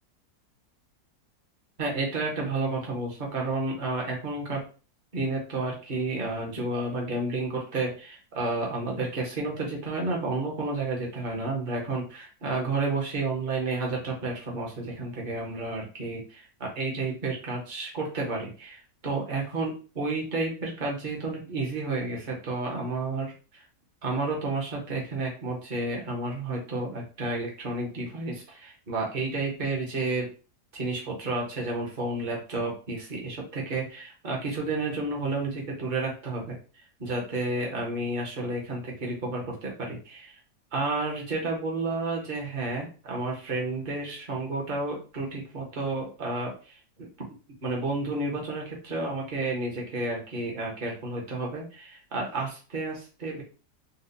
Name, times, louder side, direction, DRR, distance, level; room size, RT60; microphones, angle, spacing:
voice 1, 1.8-4.6 5.1-23.6 24.0-30.3 30.7-36.6 37.0-40.4 40.7-47.1 47.6-53.4, right 2 dB, 35° right, -2 dB, 1.0 m, -31 dB
4.3 x 2.3 x 2.6 m, 0.36 s
omnidirectional pair, 1.8 m